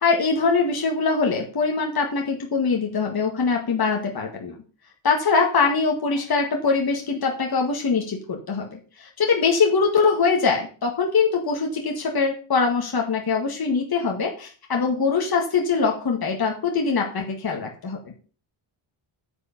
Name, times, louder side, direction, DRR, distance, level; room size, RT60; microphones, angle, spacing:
voice 1, 0.0-4.6 5.0-8.7 9.0-18.0, left 4 dB, 45° left, 1 dB, 1.9 m, -23 dB
9.7 x 5.3 x 7.1 m, 0.38 s
wide cardioid pair, 130°, 49 cm